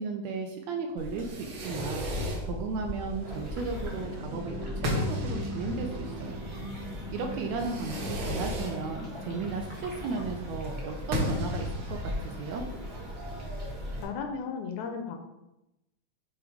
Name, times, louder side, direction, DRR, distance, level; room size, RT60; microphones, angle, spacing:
voice 1, 0.0-2.1 2.4-6.4 7.1-12.6, right 4 dB, 75° right, 3 dB, 1.7 m, -35 dB
Fireworks, 1.0-14.0, left 1 dB, 55° right, 1.4 m, -36 dB
sound 1, 3.2-14.1, equal, 35° right, 0.4 m, -40 dB
voice 2, 14.0-15.2, left 5 dB, 75° left, 4 dB, 1.9 m, -35 dB
7.1 x 3.4 x 4.9 m, 0.93 s
omnidirectional pair, 3.6 m